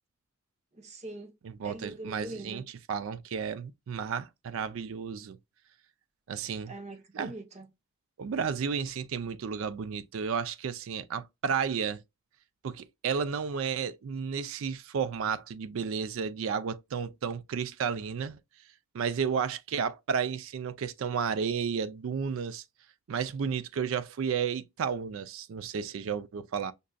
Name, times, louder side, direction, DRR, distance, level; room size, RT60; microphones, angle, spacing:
voice 1, 0.8-1.3 1.6-2.6 6.7-7.7, right 2 dB, 30° right, 0.7 m, -42 dB
voice 2, 1.4-5.4 6.3-6.7 7.1-7.3 8.2-12.0 12.6-18.4 18.9-22.6 23.1-26.7, right 6 dB, 65° right, 0.3 m, -32 dB
5.2 x 2.5 x 2.2 m
head